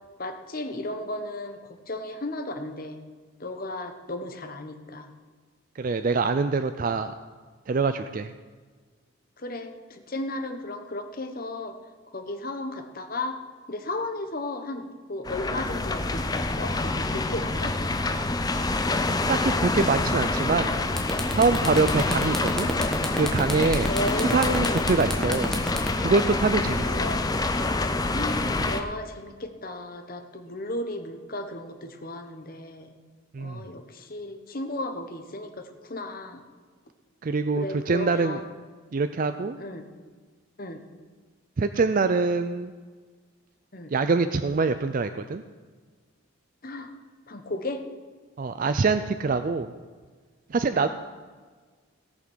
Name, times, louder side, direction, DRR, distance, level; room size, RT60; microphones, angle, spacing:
voice 1, 0.2-3.0 3.4-5.1 9.4-11.7 12.1-13.4 13.7-17.7 23.9-24.8 26.6-27.2 28.1-32.9 33.4-36.4 37.6-38.4 39.6-39.9 40.6-40.8 43.7-43.9 46.6-46.9 47.3-47.8 50.7-50.9, left 1 dB, 45° left, 6 dB, 1.1 m, -34 dB
voice 2, 5.8-7.1 7.7-8.3 19.3-20.7 21.3-22.7 23.1-23.9 24.3-25.6 26.0-26.8 33.3-33.6 37.2-38.4 38.9-39.6 41.6-42.7 43.9-45.4 48.4-49.7 50.5-50.9, right 4 dB, 40° right, 10 dB, 0.4 m, -24 dB
sound 1, 15.3-28.8, left 2 dB, 20° left, 0.5 m, -26 dB
sound 2, 21.0-27.0, equal, 5° left, 1.2 m, -31 dB
17.5 x 6.0 x 6.3 m, 1.5 s
head